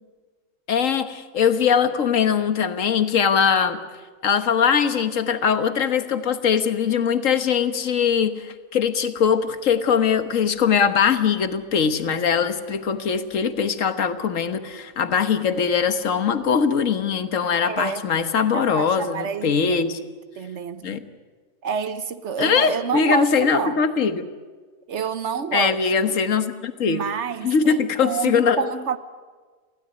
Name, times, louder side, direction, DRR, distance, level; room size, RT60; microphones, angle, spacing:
voice 1, 0.7-3.8 4.2-20.0 20.8-21.0 22.4-24.3 25.5-27.0 27.4-28.7, left 6 dB, 60° left, 1.6 m, -21 dB
voice 2, 17.6-18.0 18.5-19.9 20.4-21.0 21.6-23.8 24.9-26.2 26.8-29.0, right 6 dB, 55° right, 1.1 m, -28 dB
23.0 x 16.0 x 9.5 m
omnidirectional pair, 1.5 m